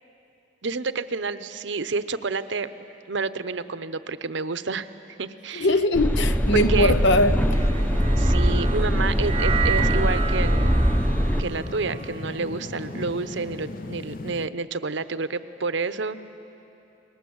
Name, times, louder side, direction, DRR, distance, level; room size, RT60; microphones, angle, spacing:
voice 1, 0.6-2.7 3.1-4.9 5.2-5.7 6.5-6.9 8.2-10.7 11.4-16.2, right 4 dB, 70° right, 13 dB, 0.8 m, -29 dB
voice 2, 5.5-7.7, left 1 dB, 70° left, 11 dB, 0.9 m, -21 dB
sound 1, 5.9-11.4, equal, 10° left, 0.7 m, -22 dB
sound 2, 6.4-14.5, left 2 dB, 45° left, 0.6 m, -37 dB
sound 3, 7.5-13.9, right 7 dB, 30° right, 0.5 m, -33 dB
29.5 x 21.0 x 7.9 m, 2.9 s
head